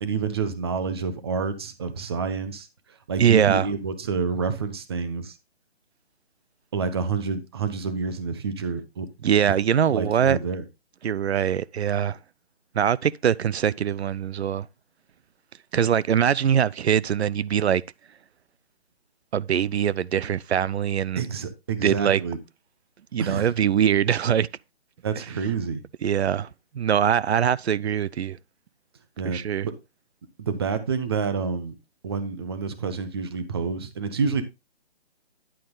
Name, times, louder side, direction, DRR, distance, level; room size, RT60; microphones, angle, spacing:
voice 1, 0.0-2.7 3.1-5.3 6.7-9.1 9.9-10.6 21.2-22.4 23.2-23.5 25.0-25.8 29.2-29.7 30.4-31.8 32.0-34.4, right 5 dB, 25° right, 0.8 m, -28 dB
voice 2, 3.2-3.7 9.2-10.4 11.0-12.2 12.7-14.7 15.7-17.8 19.3-21.2 21.8-22.2 23.1-24.5 25.2-25.3 26.0-26.5 26.7-28.4 29.2-29.7, right 9 dB, 85° right, 0.5 m, -22 dB
10.0 x 9.0 x 2.3 m
hypercardioid pair, 160°, 31 cm